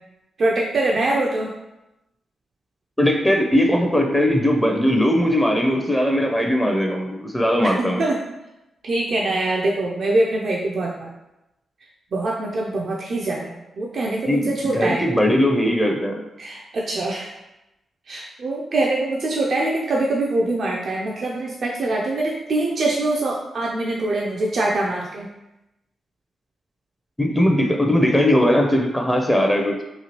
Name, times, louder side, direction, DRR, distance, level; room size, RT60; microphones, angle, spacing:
voice 1, 0.4-1.5 7.6-8.2 8.8-11.1 12.1-15.1 16.4-17.3 18.1-25.3, right 2 dB, 60° right, -2 dB, 0.4 m, -23 dB
voice 2, 3.0-8.1 14.2-16.2 27.2-29.8, equal, 10° left, 2 dB, 0.5 m, -19 dB
3.0 x 2.4 x 2.9 m, 0.93 s
hypercardioid pair, 40°, 0 cm